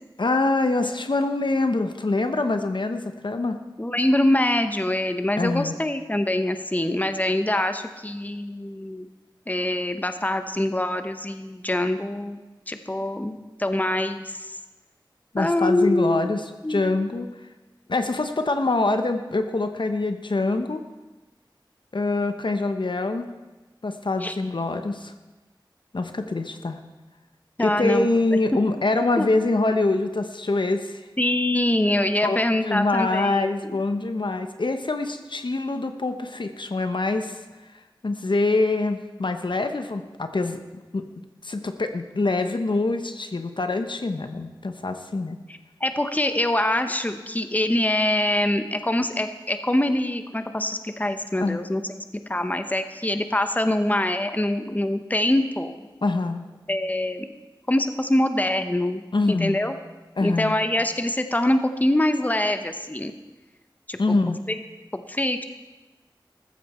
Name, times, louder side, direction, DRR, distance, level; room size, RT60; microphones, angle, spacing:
voice 1, 0.2-3.6 5.4-5.7 15.3-16.4 16.7-17.3 17.9-20.8 21.9-23.3 23.8-25.1 25.9-26.8 27.6-31.0 32.2-32.4 32.6-37.4 38.0-40.6 40.9-41.0 41.4-45.4 51.4-51.6 56.0-56.4 59.1-59.6 60.2-60.6 64.0-64.4, left 2 dB, 70° left, 7 dB, 1.0 m, -24 dB
voice 2, 3.8-9.1 9.5-12.4 12.7-14.6 15.4-16.3 16.6-16.9 24.2-24.3 27.6-28.4 29.2-29.3 31.2-33.8 45.8-51.8 52.3-55.9 56.7-57.3 57.7-59.8 60.2-63.1 63.9-64.1 64.5-64.6 64.9-65.4, left 1 dB, 20° left, 8 dB, 0.9 m, -24 dB
14.5 x 14.0 x 4.3 m, 1.1 s
wide cardioid pair, 50°, 8 cm